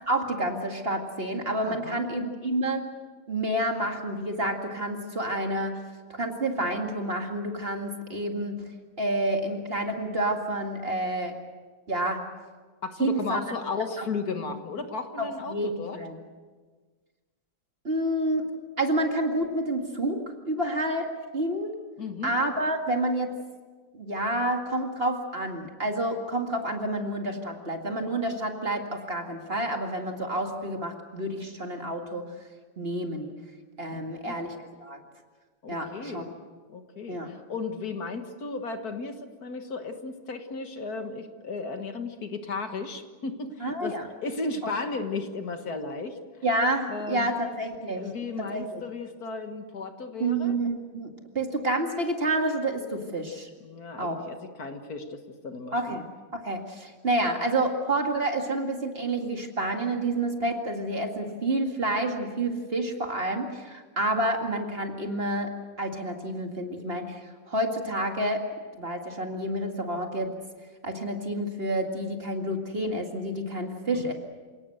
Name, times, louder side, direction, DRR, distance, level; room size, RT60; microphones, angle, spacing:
voice 1, 0.1-2.8 3.3-5.8 6.1-8.6 9.0-11.3 11.9-12.2 13.0-13.4 14.0-14.1 15.2-16.2 17.8-18.5 18.8-21.1 21.3-21.7 22.2-23.3 23.9-32.2 32.8-33.3 33.8-34.5 34.8-35.0 35.7-36.2 37.1-37.3 43.6-44.0 46.4-48.0 48.4-48.8 50.2-53.5 54.0-54.2 55.7-56.0 56.3-65.5 65.8-67.2 67.5-68.4 68.8-70.3 70.8-74.1, right 1 dB, 35° right, 3 dB, 2.3 m, -29 dB
voice 2, 1.7-2.0 12.8-16.0 22.0-22.4 33.9-34.4 35.6-36.3 36.7-46.2 46.9-47.3 48.0-50.6 53.6-56.0 73.9-74.1, left 4 dB, 60° left, 7 dB, 1.9 m, -35 dB
28.0 x 18.0 x 7.9 m, 1.4 s
omnidirectional pair, 1.9 m